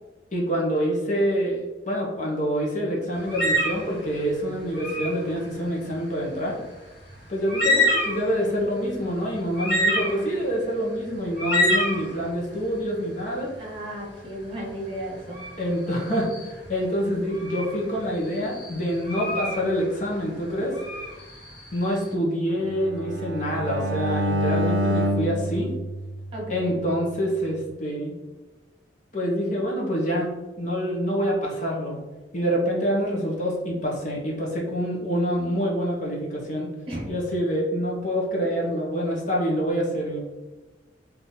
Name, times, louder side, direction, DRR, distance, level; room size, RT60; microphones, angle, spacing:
voice 1, 0.3-6.6 7.3-13.5 15.6-20.7 21.7-25.7 26.5-28.1 29.1-32.0 32.3-36.7 37.1-40.2, equal, 40° left, -3 dB, 1.1 m, -26 dB
sound 1, 3.3-3.9 4.7-5.2 7.1-7.2 7.5-8.3 8.9-9.0 9.5-10.4 11.4-12.0 15.3-15.6 16.3-16.7 17.3-17.7 18.3-19.6 20.7-21.8, left 1 dB, 65° left, 1.3 m, -25 dB
voice 2, 13.6-15.4 26.3-26.8 36.9-37.1, right 1 dB, 30° right, -3 dB, 1.4 m, -34 dB
Bowed string instrument, 22.5-26.7, equal, 75° right, 0.5 m, -27 dB
4.0 x 2.8 x 3.9 m, 1.2 s
head